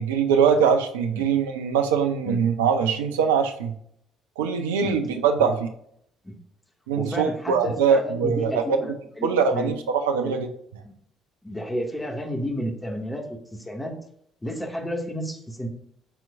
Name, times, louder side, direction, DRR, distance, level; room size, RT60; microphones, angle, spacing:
voice 1, 0.0-3.7 4.4-5.7 6.9-8.6 9.2-10.5, right 6 dB, 80° right, 6 dB, 0.9 m, -22 dB
voice 2, 7.0-9.7 10.2-10.4 10.8-11.0 11.4-13.9 14.4-15.7, equal, 15° left, 2 dB, 2.2 m, -32 dB
13.0 x 4.6 x 2.6 m, 0.67 s
hypercardioid pair, 55°, 0 cm